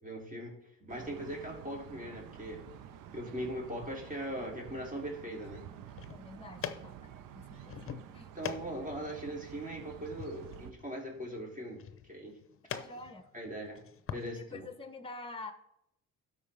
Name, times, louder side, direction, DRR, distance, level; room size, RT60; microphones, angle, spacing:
voice 1, 0.0-2.6 3.1-5.6 8.3-12.4 13.3-13.8 14.1-14.7, right 1 dB, 25° right, -1 dB, 3.2 m, -40 dB
sound 1, 0.9-10.7, right 10 dB, 70° right, 0.8 m, -50 dB
sound 2, 5.7-14.3, left 8 dB, 40° left, 0.8 m, -45 dB
voice 2, 6.1-7.7 8.1-8.3 12.7-13.3 14.3-15.5, left 3 dB, 15° left, 9 dB, 1.0 m, -46 dB
12.5 x 4.7 x 3.4 m, 0.78 s
supercardioid pair, 70°, 34 cm